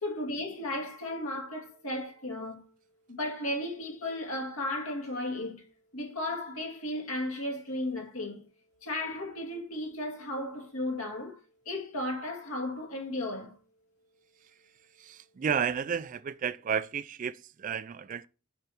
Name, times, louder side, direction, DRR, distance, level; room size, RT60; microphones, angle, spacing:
voice 1, 0.0-2.6 3.1-5.6 5.9-8.4 8.8-11.4 11.7-13.6, left 1 dB, 75° left, 2.2 m, -35 dB
voice 2, 15.0-18.3, right 7 dB, 35° right, 0.3 m, -32 dB
6.7 x 5.8 x 4.3 m
head